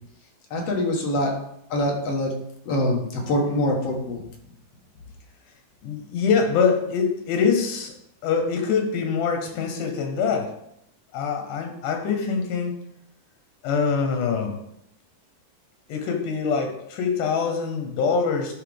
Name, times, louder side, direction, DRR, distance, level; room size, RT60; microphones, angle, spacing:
voice 1, 0.5-1.3 1.7-2.3 2.7-4.2, left 1 dB, 60° left, 0 dB, 2.1 m, -24 dB
voice 2, 5.8-7.9 8.2-10.6 11.1-12.8 13.6-14.6 15.9-18.5, left 5 dB, 90° left, 4 dB, 2.5 m, -24 dB
11.0 x 4.1 x 3.4 m, 0.75 s
omnidirectional pair, 3.6 m